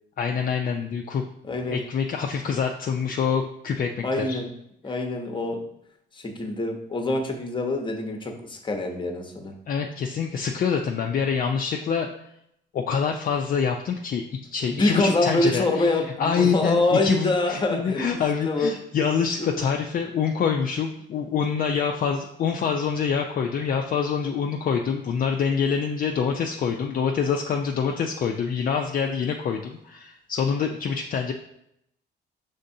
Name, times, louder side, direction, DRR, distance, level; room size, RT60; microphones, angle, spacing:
voice 1, 0.2-1.2 1.7-4.4 9.7-12.1 12.7-14.2 14.5-31.3, left 6 dB, 45° left, 3 dB, 0.4 m, -26 dB
voice 2, 1.4-1.8 4.0-4.5 4.8-5.7 6.1-9.5 14.7-18.1 18.4-18.7 19.4-19.6, left 2 dB, 25° left, 3 dB, 0.8 m, -25 dB
5.3 x 3.6 x 2.7 m, 0.78 s
cardioid pair, 90°, 20 cm